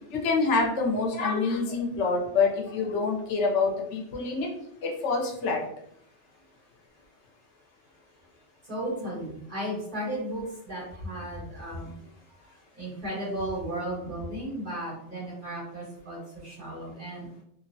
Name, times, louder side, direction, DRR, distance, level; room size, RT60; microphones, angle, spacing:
voice 1, 0.1-4.5 4.8-5.6, left 4 dB, 85° left, 0 dB, 0.9 m, -26 dB
voice 2, 8.6-11.9 12.3-17.3, right 1 dB, 45° right, -6 dB, 1.3 m, -35 dB
2.7 x 2.0 x 2.6 m, 0.72 s
omnidirectional pair, 1.2 m